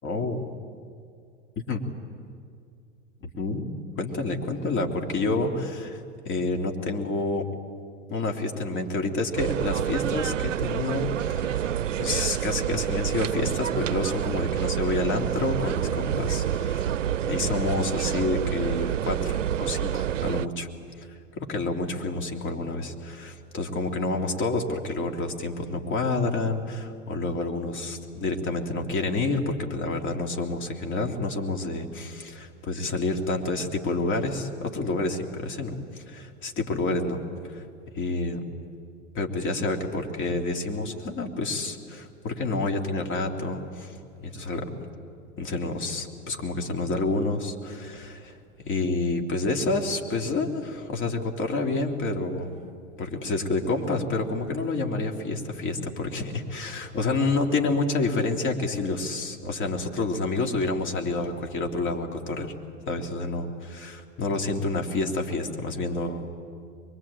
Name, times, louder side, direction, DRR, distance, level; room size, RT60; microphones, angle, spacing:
voice 1, 0.0-0.4 1.7-1.8 3.4-3.7 4.0-7.5 8.1-11.7 12.0-16.9 17.2-20.7 21.0-21.1 21.4-37.2 37.5-37.6 37.9-38.4 39.1-44.7 45.4-48.4 48.6-52.5 53.0-62.5 62.9-66.3, left 3 dB, 30° left, 2 dB, 3.3 m, -29 dB
sound 1, 9.4-20.5, right 10 dB, 80° right, 0.6 m, -28 dB
23.5 x 23.0 x 8.9 m, 2.3 s
figure-of-eight pair, 90°, 37 cm